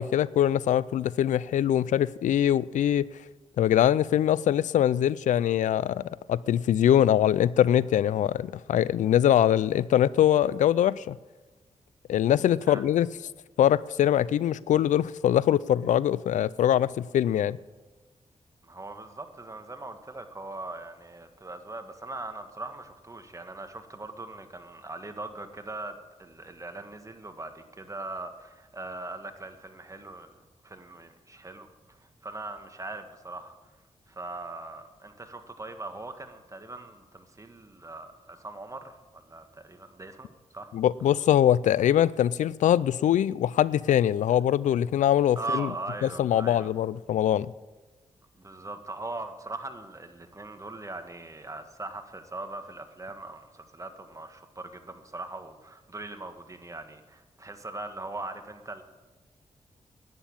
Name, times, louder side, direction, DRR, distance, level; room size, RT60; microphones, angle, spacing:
voice 1, 0.0-3.0 3.6-11.2 12.1-13.1 13.6-17.6 40.7-45.7 46.2-47.5, left 11 dB, 90° left, 0.4 m, -23 dB
voice 2, 18.6-30.3 30.6-33.7 34.1-40.7 45.3-46.7 48.3-58.8, right 2 dB, 25° right, 1.6 m, -40 dB
11.0 x 9.3 x 8.9 m
cardioid pair, 70°, 12 cm